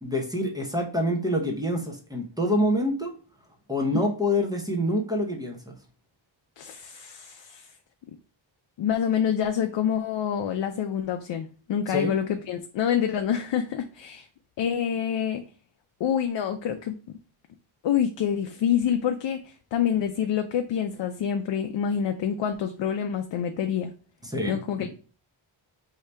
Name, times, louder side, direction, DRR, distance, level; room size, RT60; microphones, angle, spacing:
voice 1, 0.0-3.1 3.7-5.8 11.9-12.1 24.2-24.9, left 1 dB, 10° right, 1 dB, 0.7 m, -26 dB
voice 2, 6.6-7.7 8.8-14.3 14.6-15.4 16.0-17.0 17.8-23.9 24.5-24.9, left 8 dB, 65° left, 5 dB, 0.5 m, -27 dB
4.7 x 2.8 x 3.3 m, 0.39 s
wide cardioid pair, 170°, 47 cm